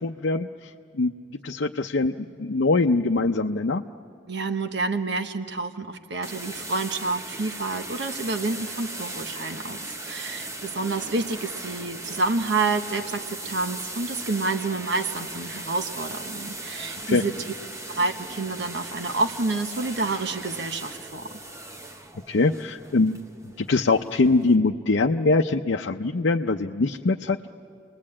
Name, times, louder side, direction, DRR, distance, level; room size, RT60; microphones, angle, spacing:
voice 1, 0.0-1.1 1.4-3.8 17.1-17.2 22.3-23.2 23.6-27.5, left 3 dB, 80° left, 2 dB, 0.6 m, -23 dB
voice 2, 4.3-17.3 17.9-21.3, right 3 dB, 70° right, 8 dB, 1.1 m, -28 dB
sound 1, 6.2-24.6, right 2 dB, 15° right, 1.0 m, -38 dB
28.5 x 21.0 x 8.7 m, 2.5 s
head